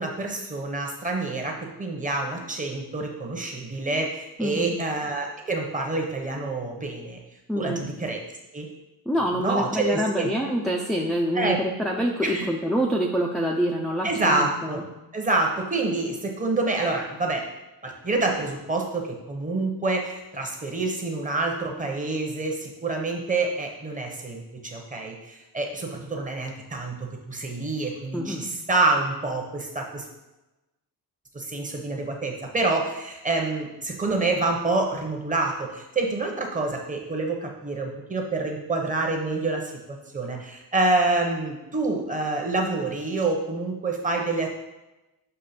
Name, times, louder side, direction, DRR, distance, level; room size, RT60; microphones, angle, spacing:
voice 1, 0.0-7.2 7.5-8.2 8.5-8.7 9.4-10.3 11.3-11.6 12.2-12.5 14.0-14.8 15.1-17.4 17.8-27.0 27.3-30.0 31.3-39.7 40.1-44.5, right 3 dB, 20° right, 1 dB, 0.9 m, -27 dB
voice 2, 4.4-4.7 7.5-7.8 9.1-14.8 28.1-28.5, equal, ahead, -1 dB, 0.4 m, -26 dB
6.7 x 3.1 x 5.8 m, 1.0 s
wide cardioid pair, 160°, 38 cm